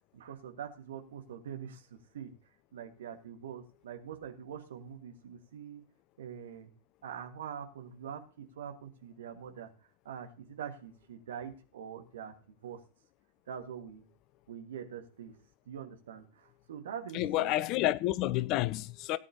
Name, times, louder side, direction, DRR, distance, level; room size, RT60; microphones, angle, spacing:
voice 1, 0.1-2.4 2.7-5.8 6.2-6.7 7.0-9.7 10.1-12.8 13.5-14.1 14.5-15.3 15.7-17.5, right 8 dB, 60° right, 1.8 m, -44 dB
voice 2, 17.1-19.2, left 15 dB, 40° left, 0.5 m, -29 dB
17.5 x 9.7 x 2.9 m
figure-of-eight pair, 90°, 0 cm